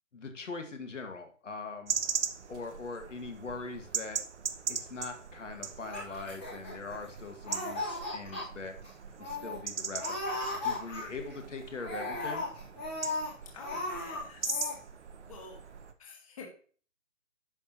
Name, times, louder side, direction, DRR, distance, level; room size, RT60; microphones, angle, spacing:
voice 1, 0.1-1.9 2.5-4.2 4.7-8.8 9.2-12.5, left 3 dB, 70° left, 5 dB, 2.1 m, -42 dB
sound 1, 1.9-15.9, right 6 dB, 60° right, 1.0 m, -40 dB
Laughter, 5.8-7.1 7.4-8.4 8.8-8.9 9.2-9.6 10.0-11.3 11.8-13.3 13.6-14.2 14.5-14.8, left 2 dB, 10° left, 1.1 m, -36 dB
voice 2, 13.5-14.8 15.2-15.6 16.0-16.5, left 6 dB, 25° left, 1 dB, 1.9 m, -41 dB
10.5 x 6.5 x 3.0 m, 0.41 s
hypercardioid pair, 170°, 38 cm